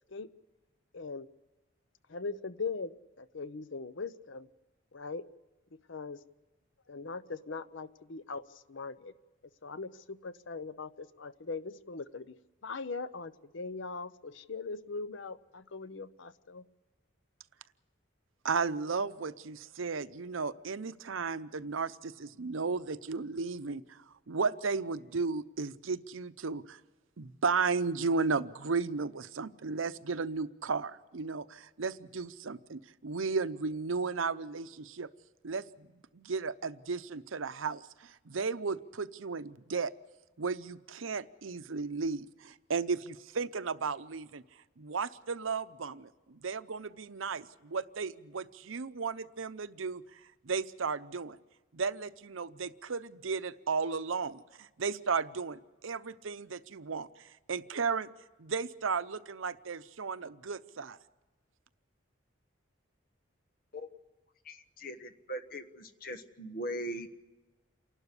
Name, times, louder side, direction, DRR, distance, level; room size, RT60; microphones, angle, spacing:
voice 1, 0.9-1.3 2.1-4.5 4.9-5.2 5.7-6.2 6.9-9.1 9.6-12.4 12.6-16.6, left 4 dB, 70° left, 14 dB, 0.7 m, -40 dB
voice 2, 18.4-24.0 24.3-26.8 27.2-35.1 35.4-39.9 40.4-44.4 44.8-50.0 50.4-51.4 51.7-57.1 57.5-58.1 58.4-61.0, right 4 dB, 85° right, 14 dB, 0.7 m, -34 dB
voice 3, 64.4-67.1, equal, 45° left, 9 dB, 1.2 m, -40 dB
28.0 x 12.0 x 8.3 m, 1.2 s
head